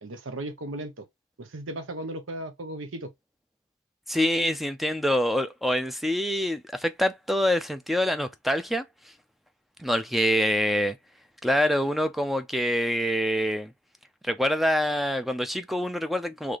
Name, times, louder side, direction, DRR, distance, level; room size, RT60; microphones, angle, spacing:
voice 1, 0.0-1.1 1.4-3.1, right 1 dB, 70° right, 0.8 m, -36 dB
voice 2, 4.1-8.8 9.8-11.0 11.4-13.7 14.2-16.6, equal, ahead, 0.5 m, -25 dB
3.3 x 3.2 x 3.9 m
head